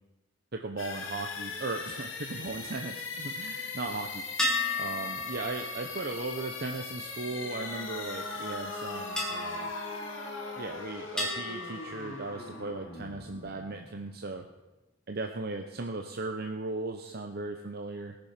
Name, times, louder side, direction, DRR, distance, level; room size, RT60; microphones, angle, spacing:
voice 1, 0.5-4.3 4.8-9.7 10.6-14.5 15.1-18.2, right 3 dB, 50° right, 4 dB, 0.8 m, -37 dB
sound 1, 0.8-14.5, left 4 dB, 75° left, 2.2 m, -40 dB
sound 2, 4.4-8.1 9.2-10.7 11.2-12.8, left 2 dB, 5° left, 2.3 m, -36 dB
Brass instrument, 7.2-11.6, left 2 dB, 30° left, 4.7 m, -43 dB
19.5 x 7.0 x 5.8 m, 1.1 s
head